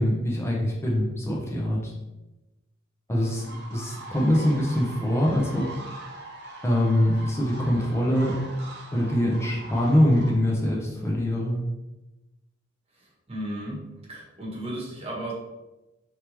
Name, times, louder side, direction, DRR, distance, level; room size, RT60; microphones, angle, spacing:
voice 1, 0.0-1.9 3.1-3.4 3.7-5.7 6.6-8.4 8.9-11.6, equal, 15° left, -3 dB, 0.7 m, -23 dB
sound 1, 3.3-10.3, right 2 dB, 55° right, 0.8 m, -42 dB
voice 2, 13.3-13.8 14.1-15.3, right 1 dB, 30° right, -4 dB, 1.4 m, -34 dB
4.6 x 3.4 x 3.0 m, 1.0 s
head